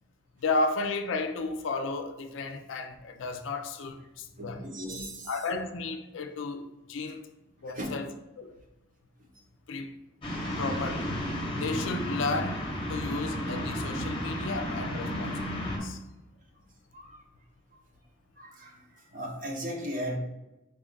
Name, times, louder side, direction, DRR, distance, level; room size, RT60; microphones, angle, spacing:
voice 1, 0.4-4.6 5.3-7.2 7.6-8.1 8.4-8.5 9.7-10.0 10.6-11.2 11.6-16.0, left 3 dB, 70° left, 0.4 m, -33 dB
voice 2, 4.4-5.3 7.7-7.9 14.0-14.1 16.9-17.2 18.4-20.2, equal, 40° right, 0.7 m, -37 dB
sound 1, 10.2-15.8, equal, 25° left, 0.8 m, -32 dB
4.6 x 2.4 x 3.7 m
head